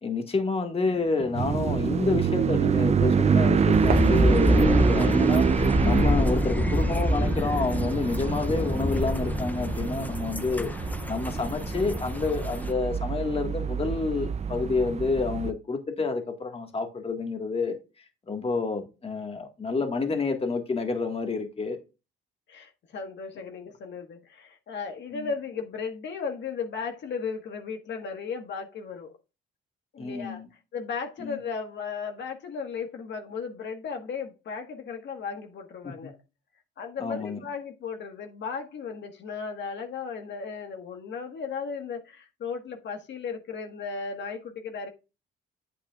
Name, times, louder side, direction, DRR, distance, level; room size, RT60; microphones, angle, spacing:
voice 1, 0.0-10.7 11.1-17.8 18.3-21.8 25.1-25.3 30.0-30.5 31.2-31.4 35.8-36.1 37.0-37.4, left 4 dB, 30° left, 1.7 m, -29 dB
sound 1, 0.8-13.3, right 5 dB, 50° right, 1.5 m, -45 dB
sound 2, 1.3-15.5, right 6 dB, 35° right, 0.5 m, -26 dB
sound 3, 3.7-12.7, left 1 dB, 10° left, 0.6 m, -27 dB
voice 2, 22.5-29.1 29.9-30.4 30.7-36.2 36.8-44.9, left 5 dB, 65° left, 1.6 m, -35 dB
8.4 x 8.4 x 2.4 m
cardioid pair, 90°, 20 cm